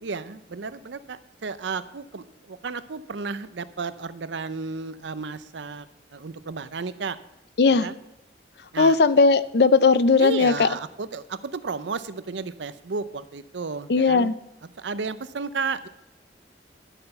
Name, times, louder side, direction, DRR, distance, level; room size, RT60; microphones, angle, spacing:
voice 1, 0.0-5.9 6.1-7.2 7.7-8.0 8.7-9.0 10.2-14.3 14.8-15.9, right 4 dB, 80° right, 14 dB, 0.6 m, -33 dB
voice 2, 8.8-10.7 13.9-14.3, left 4 dB, 60° left, 15 dB, 0.5 m, -18 dB
11.0 x 7.9 x 5.6 m, 0.91 s
head